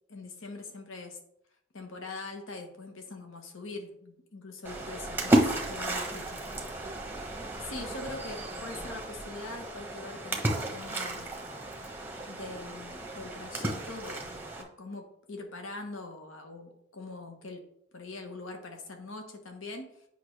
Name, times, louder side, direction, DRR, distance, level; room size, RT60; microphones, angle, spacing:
voice 1, 0.1-1.2 1.7-6.4 7.3-11.3 12.3-17.6 17.9-20.1, left 3 dB, 60° left, 4 dB, 1.1 m, -43 dB
Splash splatter, 4.6-14.6, right 1 dB, 10° right, 0.9 m, -33 dB
8.4 x 5.4 x 3.2 m, 0.74 s
head